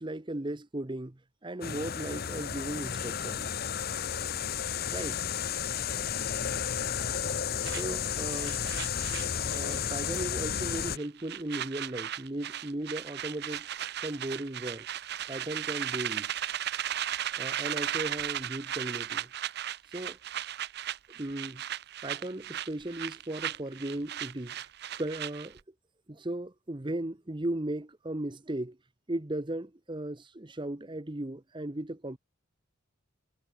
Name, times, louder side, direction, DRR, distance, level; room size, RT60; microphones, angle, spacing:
voice 1, 0.0-3.5 4.9-5.2 7.7-8.6 9.4-13.7 14.0-14.9 15.3-16.3 17.4-19.3 19.9-20.2 21.2-21.6 22.0-24.6 25.0-25.6 26.1-28.8 29.1-32.2, right 1 dB, 20° right, 0.9 m, -36 dB
sound 1, 1.6-11.0, left 8 dB, 45° left, 0.7 m, -32 dB
sound 2, 7.6-9.9 10.1-10.4 10.7-25.6, right 11 dB, 50° right, 0.7 m, -36 dB
head